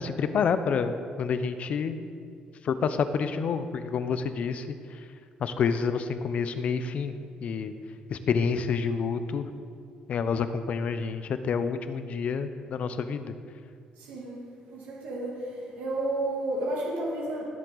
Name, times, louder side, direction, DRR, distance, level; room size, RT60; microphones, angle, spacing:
voice 1, 0.0-2.0 2.6-5.0 5.4-7.7 8.1-9.5 10.1-13.3, left 6 dB, 50° left, 10 dB, 0.7 m, -28 dB
voice 2, 14.0-14.4 14.7-15.4 15.8-17.5, right 1 dB, 85° right, -3 dB, 2.0 m, -31 dB
17.5 x 7.3 x 4.0 m, 2.2 s
cardioid pair, 135°, 3 cm